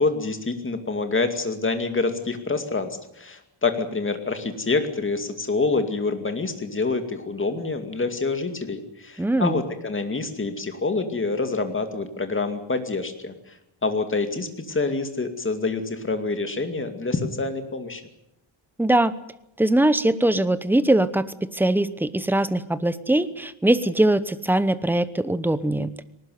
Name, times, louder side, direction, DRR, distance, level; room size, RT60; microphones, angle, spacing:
voice 1, 0.0-13.6 13.8-18.0, left 3 dB, 25° left, 7 dB, 2.4 m, -26 dB
voice 2, 9.2-9.6 18.8-19.1 19.6-25.9, right 1 dB, 5° right, 14 dB, 0.9 m, -21 dB
20.0 x 19.0 x 9.4 m, 0.82 s
wide cardioid pair, 150°, 47 cm